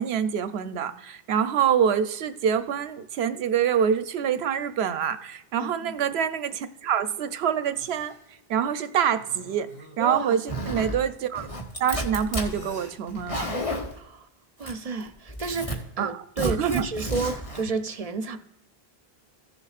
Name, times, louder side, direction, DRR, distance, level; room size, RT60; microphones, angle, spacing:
voice 1, 0.0-8.1 8.5-9.7 10.0-11.5 11.8-13.5 16.0-16.9, right 8 dB, 90° right, 0.9 m, -26 dB
voice 2, 5.6-5.9 10.0-10.4 13.9-14.3 14.6-18.4, right 4 dB, 45° right, 0.6 m, -31 dB
sound 1, 7.7-8.3 9.1-11.1 12.1-13.0, equal, 75° left, 3.2 m, -48 dB
Zipper (clothing), 10.5-11.0 11.4-12.5 13.1-13.9 14.6-15.0 15.3-15.8 16.4-17.6, equal, 35° left, 1.4 m, -31 dB
15.5 x 7.0 x 2.4 m
omnidirectional pair, 1.0 m